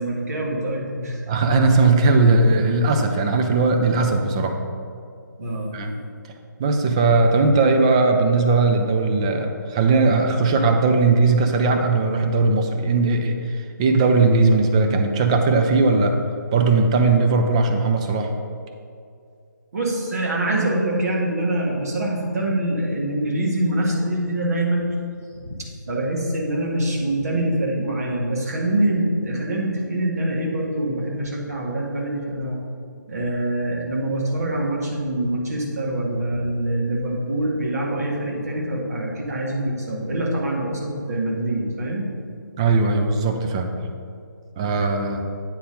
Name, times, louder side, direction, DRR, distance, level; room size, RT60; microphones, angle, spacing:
voice 1, 0.0-1.2 5.4-5.7 19.7-25.0 25.3-32.6 33.1-42.1, right 1 dB, 50° right, -2 dB, 1.7 m, -24 dB
voice 2, 1.3-4.6 5.7-5.9 6.6-16.2 16.5-18.3 42.6-43.7 44.6-45.2, right 3 dB, 15° right, 4 dB, 0.4 m, -18 dB
8.4 x 4.2 x 5.2 m, 2.3 s
figure-of-eight pair, 150°, 10 cm